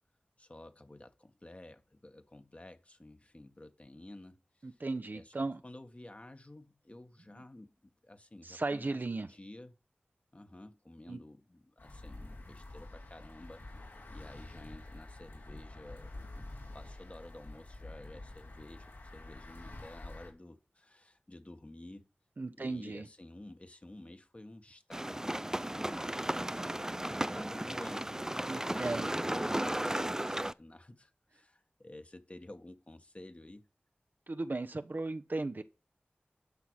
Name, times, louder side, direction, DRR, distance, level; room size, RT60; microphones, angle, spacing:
voice 1, 0.4-4.8 5.1-9.8 10.3-16.5 16.7-22.1 22.5-33.7, left 1 dB, 35° left, 1.5 m, -52 dB
voice 2, 4.6-5.6 8.4-9.3 11.1-11.2 22.4-23.1 28.5-29.1 34.3-35.6, right 3 dB, 60° right, 0.9 m, -36 dB
sound 1, 11.8-20.3, left 2 dB, 85° left, 4.6 m, -48 dB
sound 2, 24.9-30.5, right 1 dB, 15° right, 0.5 m, -35 dB
12.0 x 5.8 x 6.4 m
wide cardioid pair, 40°, 4 cm